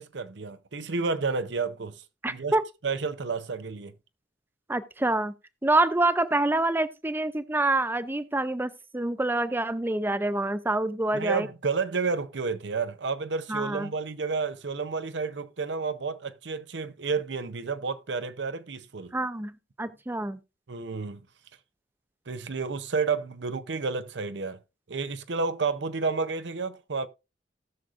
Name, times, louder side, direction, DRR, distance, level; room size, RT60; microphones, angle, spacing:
voice 1, 0.0-2.0 2.3-2.6 2.8-3.9 11.1-19.1 20.7-21.2 22.3-24.6 24.9-27.1, right 4 dB, 90° right, 0.7 m, -30 dB
voice 2, 2.2-2.6 4.7-5.3 5.6-11.5 13.5-13.9 19.1-19.5 19.8-20.4, right 2 dB, 10° right, 0.5 m, -26 dB
18.0 x 6.4 x 2.5 m
head